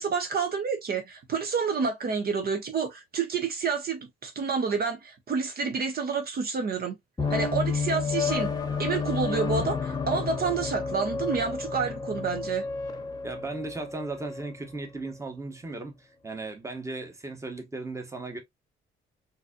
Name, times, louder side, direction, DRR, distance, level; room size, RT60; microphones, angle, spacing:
voice 1, 0.0-7.0 7.3-8.5 8.8-12.6, right 5 dB, 50° right, 0.8 m, -29 dB
sound 1, 7.2-14.5, left 5 dB, 20° left, 0.9 m, -31 dB
voice 2, 13.2-18.4, right 3 dB, 15° right, 1.0 m, -36 dB
3.9 x 2.7 x 2.3 m
cardioid pair, 90°, 20 cm